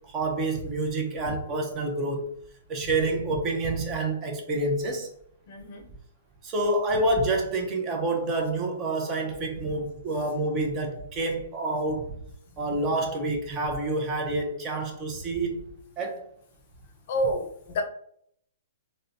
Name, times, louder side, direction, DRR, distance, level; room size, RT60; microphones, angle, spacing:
voice 1, 0.1-2.3 2.7-5.1 6.4-12.1 12.6-15.7 16.0-16.2, right 2 dB, 25° right, 2 dB, 0.7 m, -28 dB
voice 2, 5.5-5.9 17.1-17.8, equal, 50° left, 4 dB, 0.6 m, -29 dB
3.7 x 2.1 x 2.7 m, 0.68 s
hypercardioid pair, 145°, 0 cm